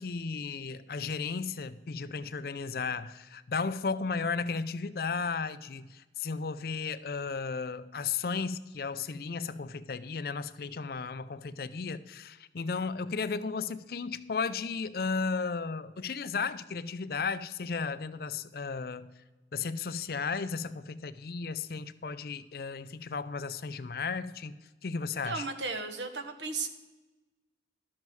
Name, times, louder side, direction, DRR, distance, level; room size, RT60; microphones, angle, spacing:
voice 1, 0.0-19.1 19.5-24.6 24.8-25.4, left 5 dB, 55° left, 14 dB, 0.5 m, -34 dB
voice 2, 25.2-26.7, right 4 dB, 85° right, 7 dB, 1.2 m, -35 dB
12.0 x 7.3 x 4.6 m, 1.1 s
head